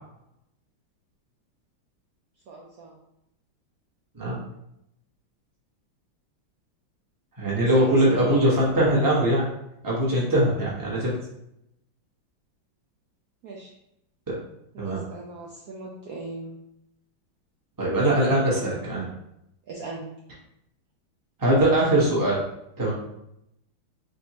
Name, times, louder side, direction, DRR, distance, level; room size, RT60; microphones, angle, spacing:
voice 1, 2.5-3.0 7.6-8.4 13.4-13.7 14.7-16.6 18.5-18.6 19.7-20.1, right 3 dB, 80° right, -2 dB, 0.8 m, -38 dB
voice 2, 7.4-9.5 9.8-11.1 14.3-14.4 14.8-15.0 17.8-19.1 21.4-22.4 22.8-22.9, right 1 dB, 15° right, -5 dB, 0.8 m, -21 dB
3.9 x 3.6 x 2.9 m, 0.80 s
omnidirectional pair, 2.3 m